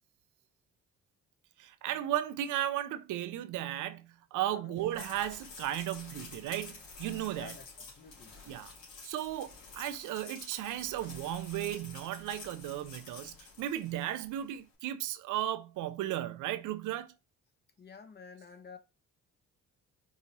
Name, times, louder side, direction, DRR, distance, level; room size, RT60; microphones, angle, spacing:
voice 1, 1.6-7.5 8.5-8.7 9.0-17.1, right 12 dB, 80° right, 0.5 m, -35 dB
sound 1, 4.8-14.3, left 4 dB, 80° left, 2.5 m, -50 dB
voice 2, 7.3-8.3 17.8-18.8, left 5 dB, 35° left, 0.9 m, -50 dB
4.8 x 2.7 x 2.9 m
cardioid pair, 90°, 30 cm